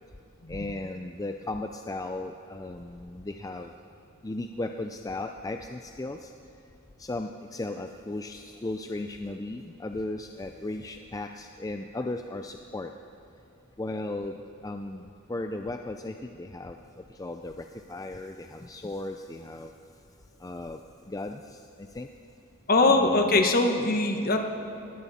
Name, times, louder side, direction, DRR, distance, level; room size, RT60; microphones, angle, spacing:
voice 1, 0.5-3.7 4.2-6.3 7.0-12.9 13.8-16.8 17.1-19.7 20.4-20.8 21.1-22.1 22.8-23.4, left 2 dB, 15° left, 6 dB, 0.4 m, -36 dB
voice 2, 22.7-24.4, left 2 dB, 45° left, 4 dB, 1.3 m, -22 dB
20.0 x 15.5 x 4.2 m, 2.7 s
head